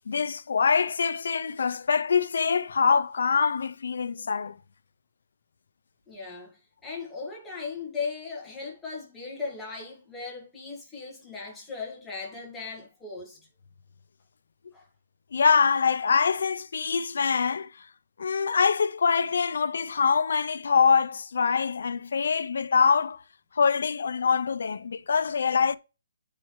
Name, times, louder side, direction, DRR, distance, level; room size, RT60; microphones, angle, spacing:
voice 1, 0.1-4.6 15.3-17.9 18.2-23.2 23.5-25.8, left 6 dB, 65° left, 0.5 m, -24 dB
voice 2, 6.1-13.4 14.7-14.9, left 4 dB, 5° left, 1.7 m, -37 dB
9.1 x 4.8 x 3.1 m
hypercardioid pair, 170°, 0 cm